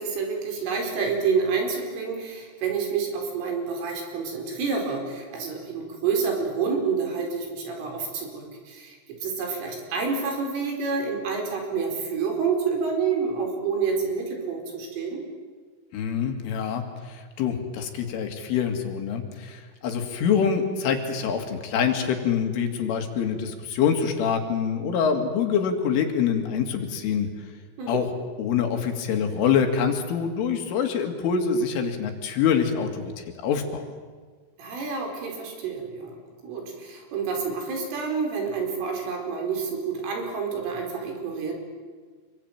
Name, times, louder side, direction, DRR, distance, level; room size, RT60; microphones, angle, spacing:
voice 1, 0.0-15.2 27.8-28.1 34.6-36.1 36.4-41.6, right 5 dB, 70° right, 2 dB, 7.3 m, -28 dB
voice 2, 15.9-16.8 17.1-27.3 27.9-28.1 28.4-33.1 33.4-33.8, left 7 dB, 70° left, 5 dB, 4.6 m, -25 dB
27.0 x 23.5 x 9.0 m, 1.5 s
omnidirectional pair, 6.0 m